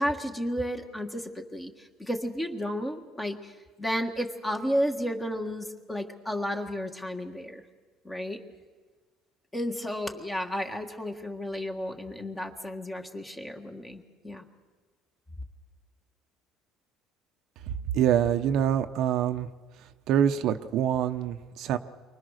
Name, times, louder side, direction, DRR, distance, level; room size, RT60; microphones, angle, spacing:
voice 1, 0.0-7.6 8.1-8.4 9.5-14.5, equal, 10° left, 4 dB, 1.7 m, -32 dB
voice 2, 17.9-19.5 20.1-21.8, right 9 dB, 60° right, 7 dB, 1.0 m, -25 dB
29.5 x 24.0 x 6.6 m, 1.4 s
cardioid pair, 145°, 0 cm